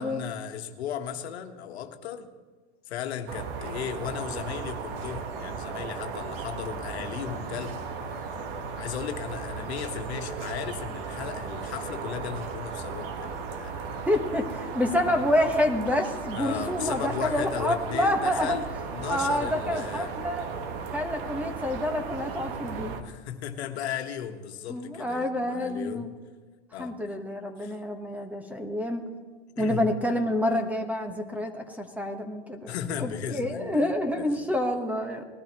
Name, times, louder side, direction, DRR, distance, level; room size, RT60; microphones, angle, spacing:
voice 1, 0.0-2.3 2.9-7.8 8.1-8.3 8.8-14.0 16.3-20.1 23.0-26.1 26.7-26.9 27.6-27.8 29.6-29.8 32.7-34.6, left 9 dB, 75° left, 5 dB, 1.4 m, -36 dB
sound 1, 3.3-23.0, right 5 dB, 60° right, 1.5 m, -36 dB
voice 2, 14.1-18.6 19.0-20.5 20.9-23.0 24.7-26.1 26.8-29.0 29.6-32.7 33.0-35.2, left 1 dB, 5° right, 5 dB, 1.2 m, -28 dB
20.0 x 12.0 x 3.0 m, 1.3 s
hypercardioid pair, 120°, 32 cm